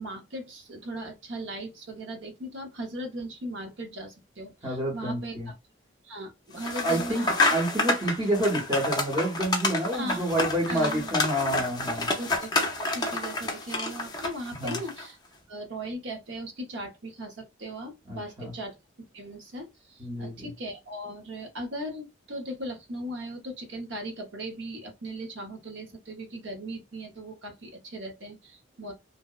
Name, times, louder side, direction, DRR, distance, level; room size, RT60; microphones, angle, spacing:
voice 1, 0.0-5.5 6.0-7.3 9.9-10.3 10.7-11.1 12.2-15.2 15.5-28.9, right 1 dB, 70° right, 0.7 m, -38 dB
voice 2, 4.6-5.5 6.8-12.1 14.6-14.8 18.1-18.5 20.0-20.3, right 1 dB, 25° right, 0.7 m, -28 dB
sound 1, 6.6-15.1, left 2 dB, 20° left, 0.4 m, -29 dB
2.7 x 2.0 x 2.2 m
head